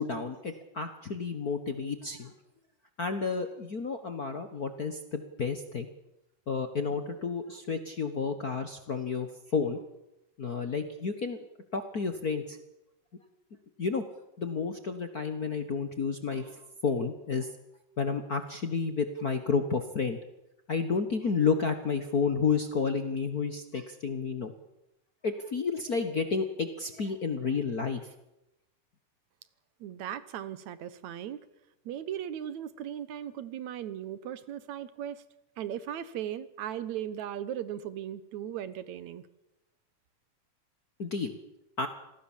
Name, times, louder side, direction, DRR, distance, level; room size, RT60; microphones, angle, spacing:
voice 1, 0.0-2.3 3.0-5.9 6.5-9.8 10.4-11.4 11.7-12.6 13.8-14.0 14.4-17.5 18.0-20.2 20.7-24.5 25.2-28.0 41.0-41.4 41.8-41.9, left 5 dB, 60° left, 8 dB, 0.9 m, -31 dB
voice 2, 29.8-31.4 31.9-35.2 35.6-39.2, right 10 dB, 65° right, 15 dB, 2.2 m, -37 dB
26.5 x 18.0 x 7.4 m, 0.89 s
omnidirectional pair, 3.9 m